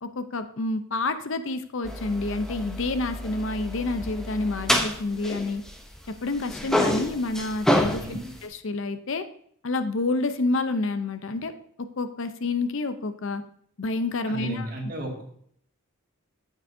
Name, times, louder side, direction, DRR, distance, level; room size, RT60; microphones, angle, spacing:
voice 1, 0.0-5.6 6.2-9.2 9.6-11.5 12.0-13.4 13.8-14.7, left 3 dB, 60° left, 10 dB, 0.6 m, -28 dB
sound 1, 1.9-6.1 6.4-8.5, left 1 dB, ahead, 0.6 m, -28 dB
voice 2, 8.0-8.3 14.3-15.2, right 1 dB, 40° right, 0 dB, 1.9 m, -34 dB
9.5 x 8.2 x 2.7 m, 0.64 s
head